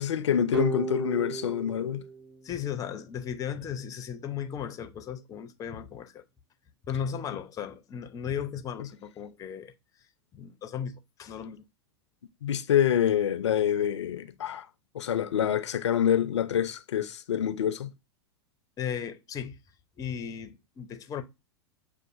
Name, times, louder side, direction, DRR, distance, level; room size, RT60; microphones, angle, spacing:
voice 1, 0.0-2.0 12.4-14.7 14.9-17.9, left 9 dB, 80° left, 0.4 m, -26 dB
sound 1, 0.5-3.3, right 4 dB, 25° right, 2.3 m, -35 dB
voice 2, 2.4-6.2 6.9-9.7 10.3-11.6 18.8-19.6 20.0-21.2, left 8 dB, 25° left, 0.5 m, -36 dB
6.3 x 2.4 x 2.4 m
hypercardioid pair, 100°, 15 cm